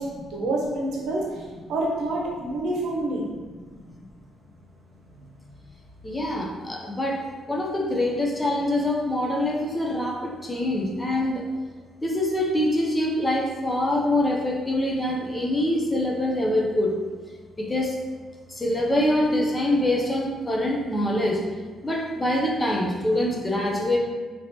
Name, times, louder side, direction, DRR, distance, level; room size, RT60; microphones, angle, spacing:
voice 1, 0.0-1.4 1.7-3.3 5.1-5.3, right 2 dB, 85° right, -2 dB, 0.7 m, -28 dB
voice 2, 6.0-11.5 12.0-17.0 17.6-18.0 18.5-21.5 21.8-24.0, left 1 dB, 20° left, -1 dB, 0.6 m, -25 dB
2.9 x 2.9 x 2.8 m, 1.5 s
cardioid pair, 90°, 0 cm